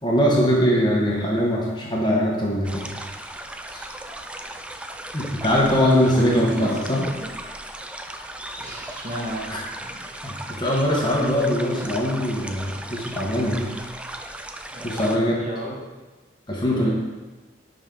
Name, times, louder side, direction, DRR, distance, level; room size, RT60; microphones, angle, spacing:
voice 1, 0.0-3.0 3.7-3.8 5.1-7.0 9.5-9.6 10.2-13.7 14.8-15.4 16.5-16.9, equal, 25° left, -3 dB, 1.3 m, -22 dB
sound 1, 2.6-15.2, right 1 dB, 5° right, 0.3 m, -37 dB
voice 2, 6.1-7.3 8.2-9.5 9.8-9.9 14.7-15.7 16.6-16.9, right 1 dB, 40° right, -4 dB, 1.7 m, -33 dB
10.5 x 5.1 x 3.9 m, 1.2 s
head